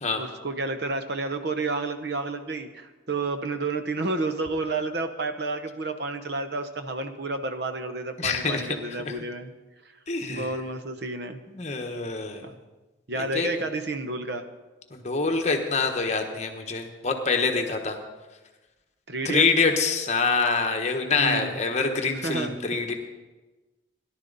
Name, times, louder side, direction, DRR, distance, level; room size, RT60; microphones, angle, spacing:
voice 1, 0.2-9.5 10.3-11.4 12.4-12.5 13.1-14.4 19.1-19.5 21.2-21.6 22.1-22.6, right 3 dB, 55° right, 8 dB, 0.8 m, -30 dB
voice 2, 8.2-8.7 10.1-10.5 11.5-12.5 13.1-13.5 14.9-18.0 19.2-22.9, left 4 dB, 35° left, 4 dB, 1.2 m, -25 dB
17.5 x 11.0 x 4.0 m, 1.2 s
head